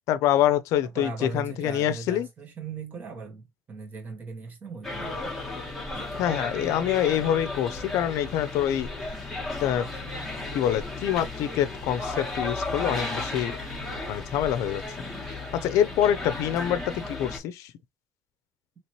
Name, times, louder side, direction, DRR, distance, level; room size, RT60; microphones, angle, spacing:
voice 1, 0.1-2.3 6.2-8.9 9.6-9.9 10.5-13.5 14.1-14.8 15.6-17.7, left 11 dB, 75° left, 0.5 m, -25 dB
voice 2, 0.8-5.3 5.9-6.3, right 4 dB, 30° right, 1.3 m, -39 dB
sound 1, 4.8-17.4, left 2 dB, ahead, 1.2 m, -34 dB
3.0 x 2.9 x 3.0 m
cardioid pair, 130°, 5 cm